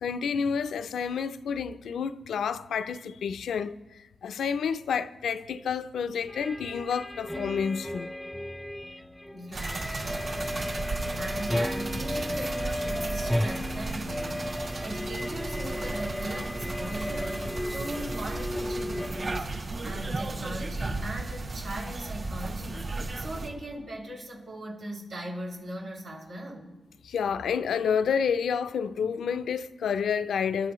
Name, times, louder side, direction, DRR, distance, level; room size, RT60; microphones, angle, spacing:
voice 1, 0.0-3.8 4.2-8.1 27.0-30.7, left 6 dB, 80° left, 0.5 m, -29 dB
sound 1, 6.3-19.4, left 1 dB, 5° left, 0.4 m, -34 dB
voice 2, 9.3-19.5 19.8-22.9 23.1-26.7, right 1 dB, 85° right, 6.1 m, -39 dB
sound 2, 9.5-23.5, right 3 dB, 60° right, 6.4 m, -35 dB
28.0 x 12.5 x 3.1 m
supercardioid pair, 45°, 0 cm